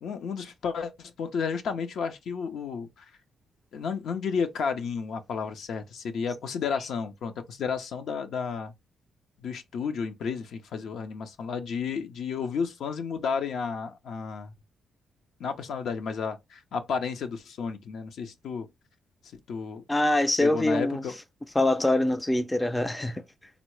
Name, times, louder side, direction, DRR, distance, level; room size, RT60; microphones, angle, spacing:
voice 1, 0.0-3.1 3.7-8.7 9.4-14.5 15.4-18.7 19.3-19.8 20.4-21.2, left 6 dB, 70° left, 0.6 m, -32 dB
voice 2, 19.9-21.0 21.6-23.2, left 1 dB, 15° left, 0.4 m, -24 dB
3.6 x 2.0 x 3.0 m
supercardioid pair, 60°, 0 cm